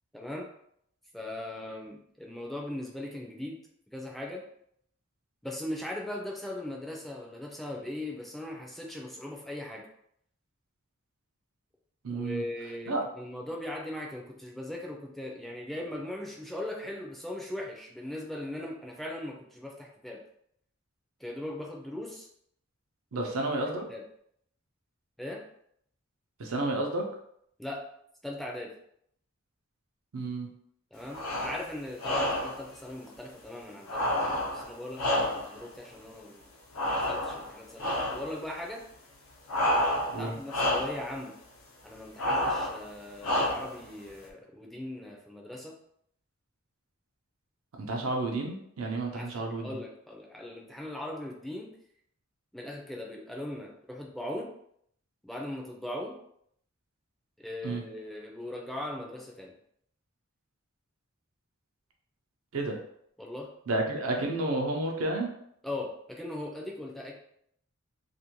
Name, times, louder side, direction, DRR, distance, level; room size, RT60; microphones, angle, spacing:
voice 1, 0.1-0.5 1.1-3.6 3.9-4.4 5.4-9.9 12.1-20.2 21.2-22.3 23.1-23.3 23.9-24.0 25.2-25.4 27.6-27.8 28.2-28.7 30.9-36.4 36.8-38.8 40.2-41.3 41.8-45.7 49.1-51.7 52.5-54.5 55.2-56.1 57.4-59.5 63.2-63.5 65.6-67.2, left 1 dB, ahead, -1 dB, 0.4 m, -39 dB
voice 2, 12.0-12.4 12.9-13.0 23.1-23.8 26.4-27.1 30.1-30.5 34.6-34.7 40.1-40.3 47.8-49.8 57.6-57.8 62.5-62.8 63.7-65.3, right 2 dB, 85° right, 1 dB, 0.6 m, -31 dB
sound 1, 31.1-31.6 32.0-32.6 33.9-35.6 36.7-37.5 37.8-38.3 39.5-40.2 40.5-41.0 42.2-42.8 43.2-43.8, left 1 dB, 80° left, 0.5 m, -29 dB
2.6 x 2.1 x 2.9 m, 0.70 s
head